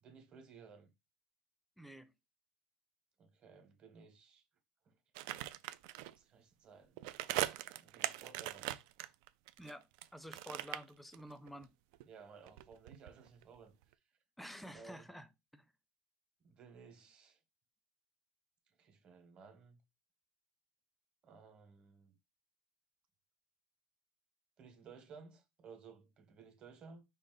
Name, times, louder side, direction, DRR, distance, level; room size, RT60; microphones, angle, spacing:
voice 1, 0.0-0.9 3.2-4.4 4.8-5.0 6.2-7.0 7.6-8.7 12.0-13.7 14.7-15.0 16.4-17.4 18.8-19.8 21.2-22.1 24.6-27.0, right 5 dB, 35° right, 1.3 m, -57 dB
voice 2, 1.8-2.1 9.6-9.8 10.1-11.7 14.4-15.3 15.5-15.6, equal, 5° left, 0.5 m, -50 dB
sound 1, 5.2-6.1 7.0-10.1 10.3-11.7 11.9-13.6 13.8-13.9, right 15 dB, 70° right, 0.4 m, -41 dB
5.1 x 2.5 x 3.9 m
supercardioid pair, 135°, 3 cm